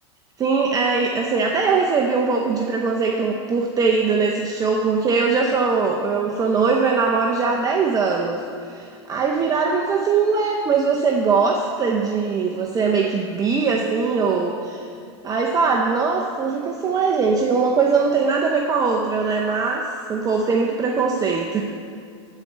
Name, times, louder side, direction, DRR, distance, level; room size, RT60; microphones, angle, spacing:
voice 1, 0.4-8.4 8.7-14.9 15.2-21.6, right 4 dB, 25° right, 0 dB, 0.7 m, -21 dB
10.5 x 4.5 x 6.6 m, 2.3 s
supercardioid pair, 120°, 15 cm